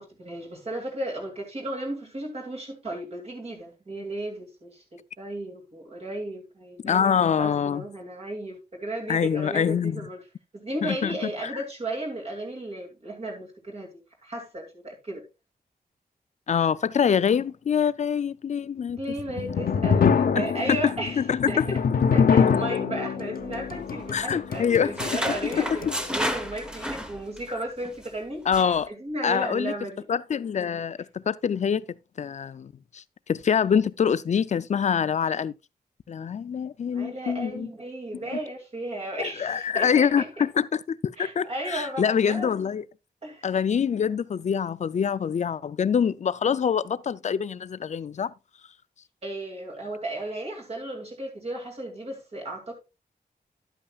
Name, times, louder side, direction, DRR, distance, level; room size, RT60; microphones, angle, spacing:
voice 1, 0.0-10.2 10.5-15.2 18.9-21.2 21.5-21.8 22.1-25.9 26.1-30.0 36.9-40.3 41.2-42.5 43.2-43.5 49.2-52.7, right 1 dB, 40° right, 2.4 m, -35 dB
voice 2, 6.8-7.9 9.1-10.0 10.8-11.6 16.5-19.0 19.4-19.6 20.3-21.7 24.1-25.9 28.5-28.9 29.2-29.7 30.1-31.8 32.2-33.0 33.3-35.5 36.1-37.7 39.2-42.8 43.4-48.3, left 7 dB, 50° left, 0.4 m, -25 dB
sound 1, 19.0-26.2, left 6 dB, 65° left, 0.8 m, -25 dB
sound 2, 23.4-24.3 24.5-27.5 27.8-28.1 28.5-28.8, equal, 5° right, 0.9 m, -32 dB
11.0 x 8.6 x 2.3 m
wide cardioid pair, 145°, 16 cm